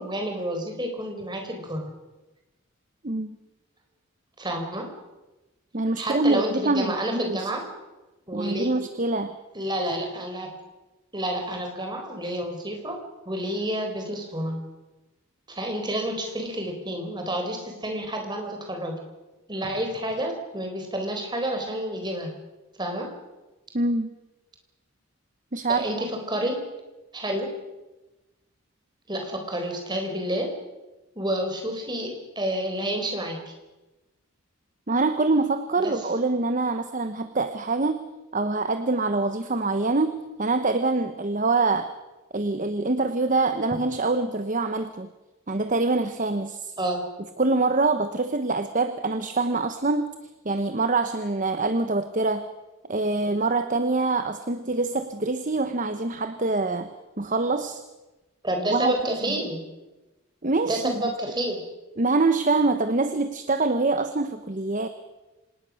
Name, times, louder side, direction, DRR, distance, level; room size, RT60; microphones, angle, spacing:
voice 1, 0.0-1.8 4.4-4.9 6.0-7.6 8.3-8.7 9.5-10.5 11.1-13.0 13.3-14.6 15.5-19.0 19.5-22.3 22.8-23.1 25.7-26.6 27.1-27.5 29.1-30.5 31.2-33.5 35.8-35.9 46.8-47.1 58.4-59.6 60.6-61.6, right 1 dB, 20° right, 3 dB, 4.2 m, -29 dB
voice 2, 3.0-3.4 5.7-7.5 8.3-9.4 23.7-24.1 25.5-26.0 34.9-38.1 38.3-41.9 42.3-45.1 45.5-46.7 47.4-50.1 50.4-52.5 52.9-56.9 57.2-57.8 58.7-58.9 59.3-59.4 60.4-61.0 62.0-64.9, right 3 dB, 35° right, 9 dB, 1.0 m, -25 dB
26.0 x 19.5 x 6.4 m, 1.1 s
head